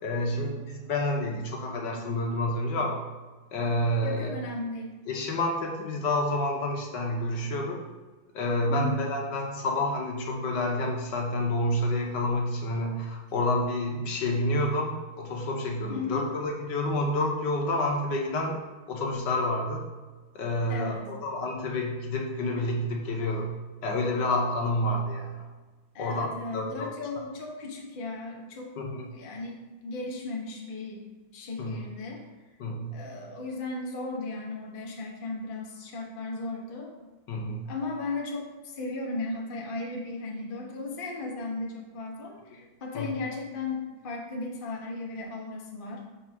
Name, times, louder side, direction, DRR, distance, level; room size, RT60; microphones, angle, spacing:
voice 1, 0.0-3.0 3.5-4.3 5.1-7.8 8.3-18.6 18.9-19.8 20.3-23.5 23.8-25.4 26.0-26.9 28.8-29.1 31.6-31.8 32.6-32.9 37.3-37.7 42.9-43.1, left 1 dB, 65° left, 1 dB, 1.4 m, -29 dB
voice 2, 4.0-5.0 8.7-9.1 15.9-16.2 20.7-21.1 25.9-28.7 29.1-31.0 31.3-32.3 32.9-36.9 37.7-46.0, left 3 dB, 45° left, -1 dB, 0.7 m, -36 dB
4.9 x 4.3 x 6.0 m, 1.3 s
omnidirectional pair, 2.3 m